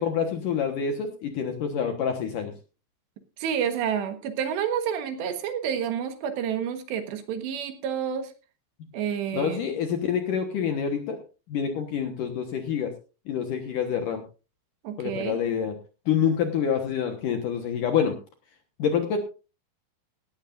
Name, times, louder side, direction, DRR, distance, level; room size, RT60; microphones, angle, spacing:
voice 1, 0.0-2.5 9.3-11.2 11.5-12.9 13.3-14.2 15.0-15.8 16.1-18.1 18.8-19.2, left 7 dB, 65° left, 5 dB, 2.2 m, -27 dB
voice 2, 3.4-8.3 8.9-9.6 14.8-15.4, right 8 dB, 75° right, 8 dB, 3.5 m, -29 dB
17.5 x 14.0 x 2.5 m, 0.33 s
omnidirectional pair, 5.3 m